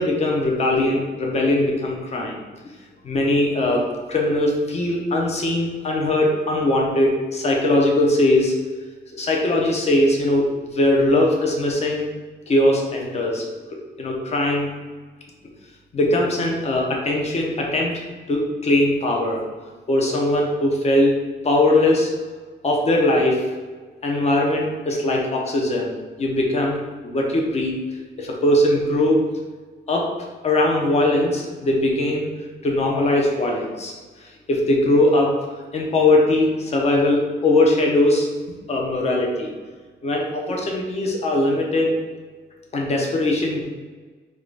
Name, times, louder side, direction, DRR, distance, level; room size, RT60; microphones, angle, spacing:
voice 1, 0.0-2.4 3.0-3.8 4.1-8.5 9.1-12.0 12.5-14.7 15.9-17.9 18.3-19.4 19.9-21.1 21.4-22.1 22.6-23.4 24.0-25.9 26.2-27.7 28.2-29.2 29.9-30.1 30.4-32.3 32.6-33.9 34.2-35.3 35.7-38.3 38.7-39.5 40.0-42.0 42.7-43.7, left 1 dB, 35° left, -1 dB, 0.8 m, -20 dB
4.6 x 2.4 x 4.7 m, 1.4 s
wide cardioid pair, 175°, 18 cm